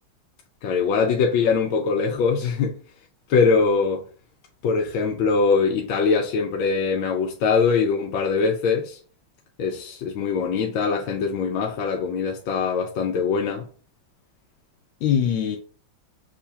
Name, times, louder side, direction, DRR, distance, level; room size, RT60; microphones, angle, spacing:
voice 1, 0.6-2.8 3.3-4.1 4.6-9.0 9.6-13.7 15.0-15.6, left 5 dB, 80° left, 1.4 m, -22 dB
6.8 x 2.4 x 2.7 m
omnidirectional pair, 2.2 m